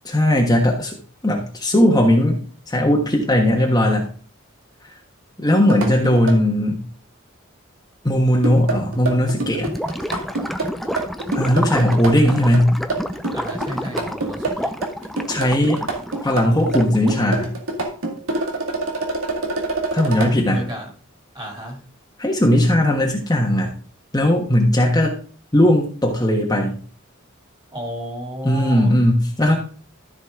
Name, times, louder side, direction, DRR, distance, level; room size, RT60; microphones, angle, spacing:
voice 1, 0.0-0.9 1.2-2.4 2.7-4.1 5.4-6.8 8.0-9.7 11.3-12.7 15.3-15.8 16.2-17.5 19.9-20.6 22.2-23.7 24.1-25.2 25.5-26.8 28.4-29.6, left 1 dB, 20° left, 0 dB, 1.3 m, -17 dB
sound 1, 5.7-6.4 8.3-20.3, right 2 dB, 85° right, 2.1 m, -26 dB
Gurgling / Liquid, 9.6-17.3, equal, ahead, 0.6 m, -30 dB
voice 2, 13.3-14.7 20.5-20.9 21.3-21.8 27.7-28.9, equal, 25° right, 0 dB, 2.9 m, -32 dB
14.0 x 5.2 x 3.7 m, 0.40 s
head